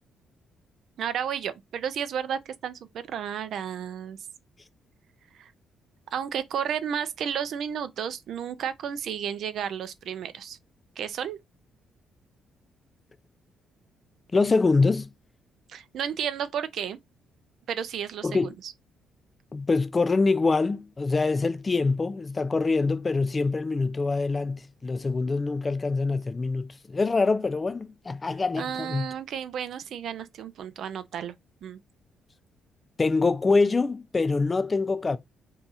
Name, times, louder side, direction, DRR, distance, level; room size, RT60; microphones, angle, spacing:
voice 1, 1.0-4.2 5.3-5.5 6.1-10.6 11.0-11.4 15.7-17.0 17.7-18.7 28.6-31.3 31.6-31.8, right 8 dB, 70° right, 0.4 m, -32 dB
voice 2, 14.3-15.1 18.2-18.5 19.5-29.1 33.0-35.2, left 3 dB, 25° left, 0.3 m, -25 dB
2.7 x 2.3 x 4.0 m
cardioid pair, 90°, 0 cm